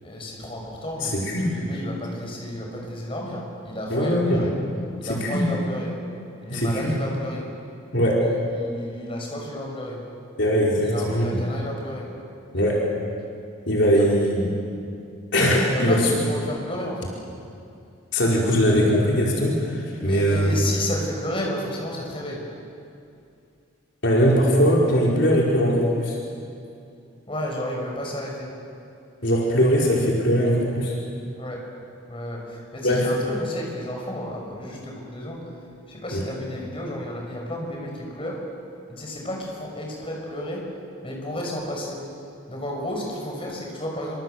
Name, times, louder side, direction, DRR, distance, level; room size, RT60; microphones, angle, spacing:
voice 1, 0.0-4.5 5.0-5.9 6.4-7.4 8.5-10.0 10.8-12.1 13.9-14.0 15.7-17.1 20.0-22.4 27.3-28.5 31.4-31.6 32.1-35.4 35.9-38.4 38.9-40.6 41.0-42.0 42.5-44.2, left 1 dB, 25° left, -1 dB, 6.2 m, -32 dB
voice 2, 1.0-1.5 3.9-4.5 5.0-5.5 6.5-6.9 7.9-8.2 10.4-11.4 12.5-12.8 13.7-14.5 15.3-16.1 18.1-20.5 24.0-26.2 29.2-30.9 32.8-33.1 36.1-36.2, equal, 60° left, -3 dB, 4.9 m, -20 dB
26.5 x 26.5 x 8.0 m, 2.5 s
head